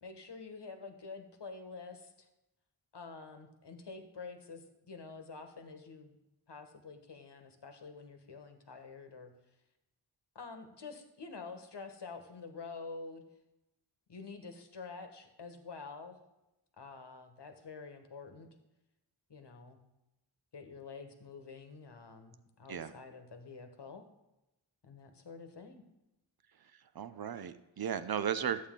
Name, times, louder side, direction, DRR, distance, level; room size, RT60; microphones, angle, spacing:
voice 1, 0.0-2.3 2.9-6.2 6.5-9.3 10.3-13.2 14.1-16.2 16.8-18.5 19.3-19.8 20.5-24.0 24.8-25.8, left 4 dB, 55° left, 6 dB, 1.3 m, -48 dB
voice 2, 26.9-28.7, right 8 dB, 50° right, 12 dB, 0.7 m, -35 dB
11.5 x 8.3 x 3.7 m, 0.92 s
cardioid pair, 55°, 49 cm